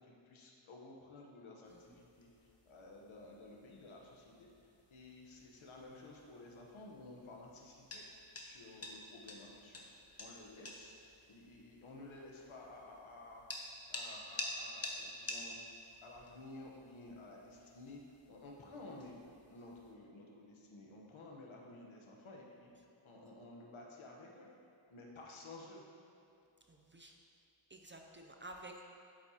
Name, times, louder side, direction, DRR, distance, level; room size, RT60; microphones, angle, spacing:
voice 1, 0.0-8.1 8.4-9.8 10.2-10.9 11.3-13.5 13.9-15.6 16.0-18.0 18.3-19.2 19.5-22.7 23.0-24.5 24.9-25.8, left 2 dB, 70° left, -1 dB, 1.2 m, -53 dB
sound 1, 1.6-19.9, left 2 dB, 30° left, 0.9 m, -50 dB
voice 2, 26.7-27.2 27.7-28.8, right 1 dB, 25° right, 2 dB, 0.5 m, -52 dB
8.4 x 7.8 x 2.9 m, 2.8 s
wide cardioid pair, 115°, 50 cm